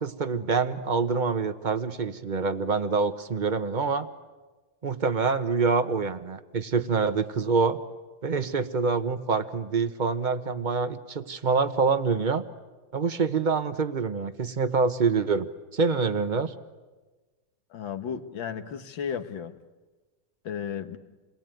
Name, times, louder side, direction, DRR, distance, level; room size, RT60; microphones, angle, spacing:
voice 1, 0.0-4.1 4.8-7.8 8.2-12.4 12.9-15.5 15.7-16.5, right 4 dB, 30° right, 11 dB, 0.9 m, -26 dB
voice 2, 17.7-19.5 20.4-21.0, left 7 dB, 85° left, 9 dB, 2.1 m, -34 dB
29.0 x 22.0 x 9.2 m, 1.3 s
omnidirectional pair, 2.0 m